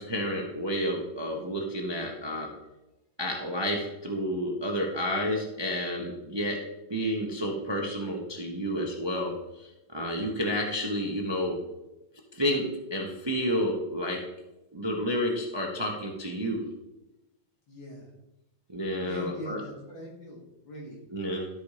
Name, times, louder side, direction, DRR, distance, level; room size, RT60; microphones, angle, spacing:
voice 1, 0.0-2.5 3.2-6.6 6.9-11.6 12.3-12.6 12.9-14.2 14.7-16.6 18.7-19.6 21.1-21.5, equal, 25° right, 0 dB, 0.6 m, -30 dB
voice 2, 17.7-18.1 19.0-21.0, equal, 80° left, -4 dB, 3.3 m, -41 dB
12.5 x 4.3 x 4.9 m, 0.97 s
omnidirectional pair, 2.1 m